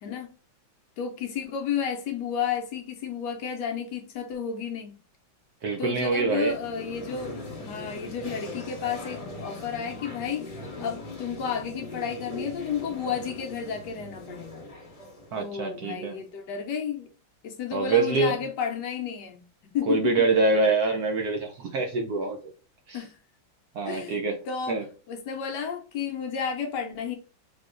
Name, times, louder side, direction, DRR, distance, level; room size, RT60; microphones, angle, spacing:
voice 1, 0.0-0.3 1.0-5.0 5.8-14.7 15.4-17.1 17.4-20.3 22.9-23.2 23.8-24.2 24.5-27.2, left 7 dB, 75° left, 1.1 m, -32 dB
voice 2, 5.6-6.5 15.3-16.2 17.7-18.4 19.9-22.4 22.9-23.0 23.7-24.4 24.7-24.8, right 3 dB, 70° right, 0.9 m, -25 dB
sound 1, 6.3-16.3, left 2 dB, 25° left, 0.9 m, -41 dB
3.6 x 3.3 x 2.4 m
omnidirectional pair, 2.1 m